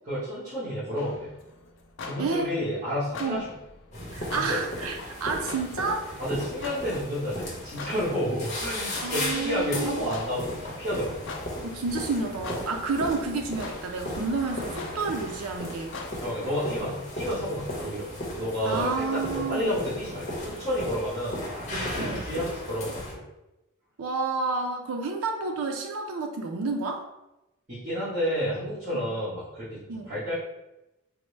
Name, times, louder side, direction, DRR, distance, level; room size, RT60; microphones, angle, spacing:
voice 1, 0.1-1.3 2.0-3.4 4.3-4.7 6.2-11.3 16.2-18.1 18.4-22.9 27.7-29.8 30.1-30.3, equal, 35° right, -14 dB, 1.3 m, -30 dB
sound 1, 1.0-16.6, left 3 dB, 60° left, 0.4 m, -44 dB
voice 2, 2.2-2.5 3.2-3.5 4.1-6.1 9.0-10.1 11.6-16.0 18.6-19.8 22.0-22.2 24.0-27.0 28.9-29.0 29.9-30.1, right 4 dB, 85° right, 2 dB, 0.4 m, -30 dB
sound 2, 3.9-23.1, left 1 dB, 35° left, 0.8 m, -36 dB
4.2 x 2.1 x 3.2 m, 0.94 s
head